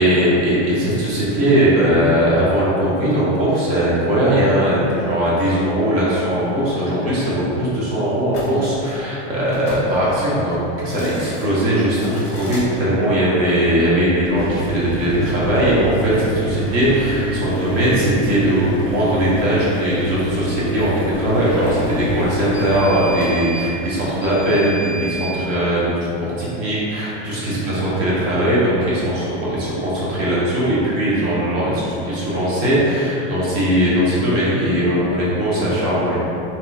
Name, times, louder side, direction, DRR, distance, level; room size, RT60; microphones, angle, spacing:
voice 1, 0.0-36.2, equal, 55° right, -8 dB, 1.2 m, -19 dB
sound 1, 8.3-8.5 9.5-9.8 10.7-11.4 11.9-12.6 14.2-25.3, right 1 dB, 15° left, 0.8 m, -27 dB
3.9 x 2.9 x 2.3 m, 2.9 s
supercardioid pair, 170°, 38 cm